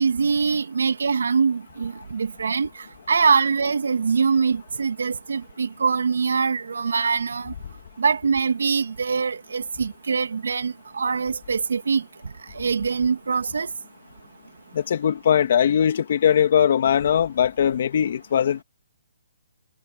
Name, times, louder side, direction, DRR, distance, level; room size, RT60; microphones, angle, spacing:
voice 1, 0.0-2.7 3.1-7.5 8.0-13.7, right 5 dB, 85° right, 2.6 m, -23 dB
voice 2, 14.7-18.6, left 9 dB, 55° left, 2.6 m, -20 dB
hypercardioid pair, 160°, 0 cm